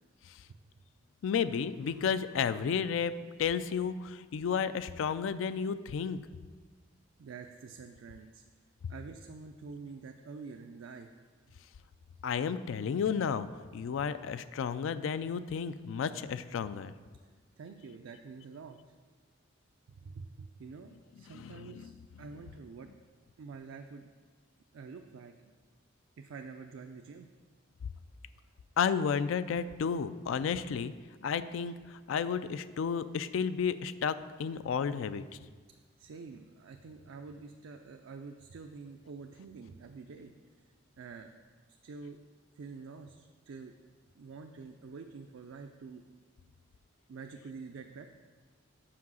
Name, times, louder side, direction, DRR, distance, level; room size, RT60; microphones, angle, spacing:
voice 1, 1.2-3.1 3.4-6.2 12.2-13.5 13.7-16.9 21.3-21.9 28.8-30.9 31.2-35.2, left 6 dB, 80° left, 13 dB, 0.3 m, -32 dB
voice 2, 7.2-8.4 8.9-11.1 17.6-18.9 19.9-21.9 22.2-22.9 23.4-24.1 24.7-25.3 26.2-27.3 35.7-40.3 41.0-41.4 41.8-42.2 42.6-43.7 44.1-46.0 47.1-48.2, right 4 dB, 90° right, 5 dB, 0.4 m, -47 dB
5.9 x 4.7 x 6.2 m, 1.5 s
head